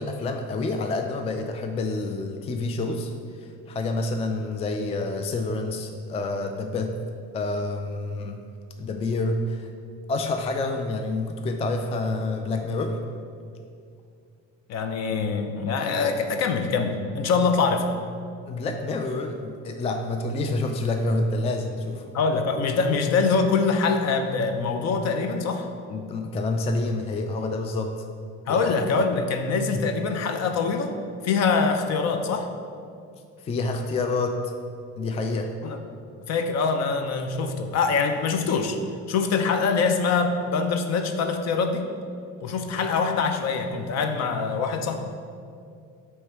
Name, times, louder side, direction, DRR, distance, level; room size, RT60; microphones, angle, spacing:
voice 1, 0.0-7.0 7.3-8.4 8.8-9.7 10.1-13.0 18.4-22.1 25.9-27.9 28.5-28.6 29.7-29.8 33.4-34.4 35.0-35.5, left 2 dB, 20° left, 5 dB, 0.3 m, -28 dB
voice 2, 14.7-17.9 22.1-25.7 28.5-31.0 31.2-32.5 35.6-35.8 36.3-38.8 39.1-41.9 42.4-44.9, left 4 dB, 55° left, 6 dB, 0.7 m, -24 dB
8.2 x 3.2 x 4.5 m, 2.3 s
cardioid pair, 110°, 31 cm